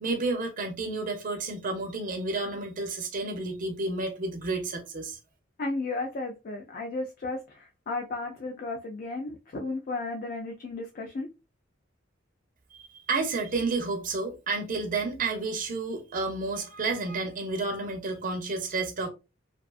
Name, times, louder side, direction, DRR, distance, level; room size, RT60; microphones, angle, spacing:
voice 1, 0.0-5.2 13.1-19.1, right 3 dB, 45° right, 0.5 m, -31 dB
voice 2, 5.6-11.3, left 2 dB, 45° left, 0.4 m, -34 dB
2.4 x 2.4 x 2.3 m
head